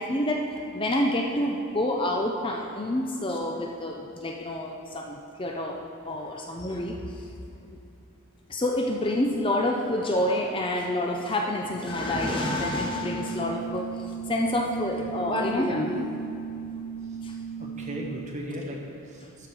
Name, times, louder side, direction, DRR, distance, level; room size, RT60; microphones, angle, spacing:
voice 1, 0.0-5.8 6.0-7.3 8.5-16.1 17.2-17.4 19.2-19.3, left 1 dB, 25° left, 1 dB, 0.6 m, -28 dB
sound 1, 11.9-18.2, right 3 dB, 50° left, 1.7 m, -35 dB
voice 2, 17.6-19.5, equal, 35° right, -1 dB, 1.4 m, -37 dB
12.5 x 5.2 x 6.3 m, 2.7 s
head